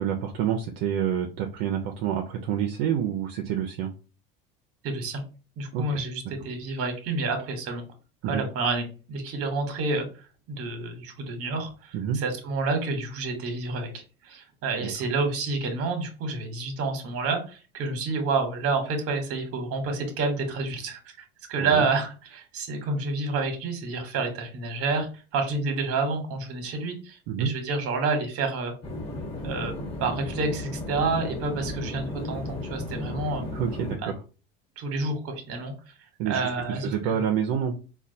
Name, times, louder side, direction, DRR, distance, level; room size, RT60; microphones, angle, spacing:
voice 1, 0.0-3.9 5.7-6.0 8.2-8.4 11.9-12.2 14.8-14.9 21.6-21.8 27.3-27.5 33.5-34.2 36.2-36.4 36.8-37.7, right 9 dB, 75° right, 3 dB, 0.6 m, -28 dB
voice 2, 4.8-5.2 5.6-7.8 8.3-10.1 10.5-28.7 29.4-29.7 30.0-33.4 34.0-34.1 34.8-35.7 36.2-37.2, right 3 dB, 50° right, 6 dB, 1.1 m, -29 dB
sound 1, 28.8-34.0, left 1 dB, 20° left, 1.4 m, -34 dB
4.0 x 2.3 x 2.7 m, 0.34 s
supercardioid pair, 100°, 29 cm